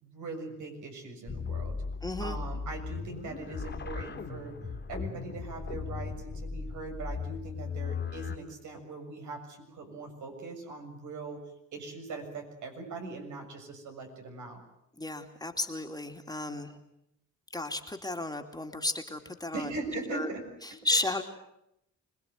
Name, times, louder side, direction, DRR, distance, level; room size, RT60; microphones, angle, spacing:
voice 1, 0.0-1.8 2.2-4.6 4.9-11.4 11.7-14.6 19.5-20.4 20.9-21.0, right 3 dB, 75° right, 3 dB, 7.0 m, -40 dB
sound 1, 1.3-8.4, left 5 dB, 35° left, 2.7 m, -37 dB
voice 2, 2.0-2.4 15.0-16.8 17.5-19.7 20.1-20.3 20.6-21.2, left 2 dB, 15° left, 4 dB, 2.8 m, -33 dB
26.5 x 20.0 x 9.4 m, 0.81 s
cardioid pair, 90°, 30 cm